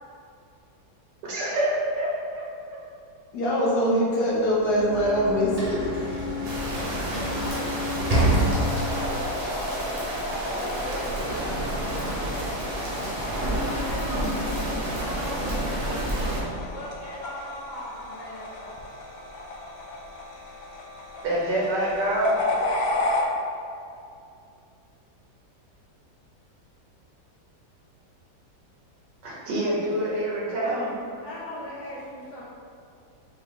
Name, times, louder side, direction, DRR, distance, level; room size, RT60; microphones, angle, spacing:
voice 1, 1.3-2.5 21.2-22.5 29.2-30.9, right 1 dB, 80° right, -5 dB, 1.7 m, -26 dB
voice 2, 3.3-5.9, equal, 70° left, -7 dB, 1.6 m, -23 dB
Sliding door / Slam, 4.5-9.1, equal, 40° right, 0.5 m, -27 dB
sound 1, 6.4-16.4, right 1 dB, 60° right, 1.2 m, -30 dB
sound 2, 6.8-23.2, left 2 dB, 85° left, 1.3 m, -34 dB
voice 3, 6.9-10.0 10.2-14.3 14.6-18.7 29.8-30.1 30.5-30.9 31.2-32.4, equal, 40° left, -11 dB, 0.8 m, -39 dB
5.6 x 2.4 x 3.7 m, 2.5 s
omnidirectional pair, 1.8 m